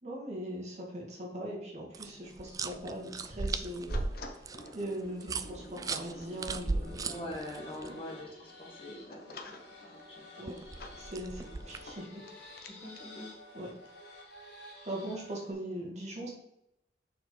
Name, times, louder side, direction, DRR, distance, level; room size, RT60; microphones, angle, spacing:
voice 1, 0.0-4.4 4.7-7.3 7.8-8.0 10.4-10.6 10.9-12.2 13.5-13.7 14.8-16.3, right 1 dB, 40° right, -2 dB, 2.1 m, -40 dB
sound 1, 1.9-7.9 10.5-11.9, right 3 dB, 20° right, 0.3 m, -37 dB
sound 2, 3.9-13.1, left 2 dB, 55° left, 0.9 m, -51 dB
sound 3, 6.8-15.5, left 2 dB, 75° left, 2.7 m, -52 dB
voice 2, 7.0-10.5 11.4-11.5 12.7-13.3, left 1 dB, 30° left, -1 dB, 1.7 m, -44 dB
6.8 x 5.6 x 3.9 m, 0.83 s
head